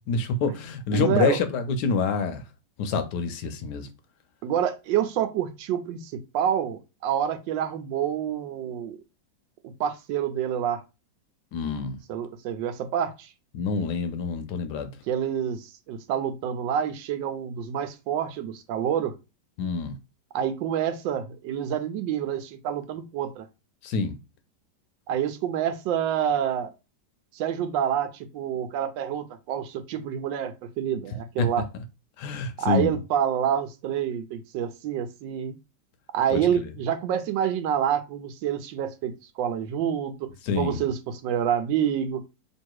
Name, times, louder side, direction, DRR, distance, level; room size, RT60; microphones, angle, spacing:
voice 1, 0.0-2.4 2.8-3.9 11.5-12.0 13.5-14.9 19.6-20.0 23.8-24.2 31.4-31.5 32.2-32.9 36.3-36.5 40.4-40.8, left 4 dB, 70° left, 1.1 m, -27 dB
voice 2, 0.9-1.4 4.4-9.0 9.8-10.8 12.1-13.3 15.1-19.1 20.3-23.5 25.1-26.7 27.3-31.7 32.6-35.5 36.1-40.3 40.6-42.2, right 9 dB, 80° right, 1.3 m, -27 dB
3.1 x 2.7 x 4.5 m
omnidirectional pair, 2.0 m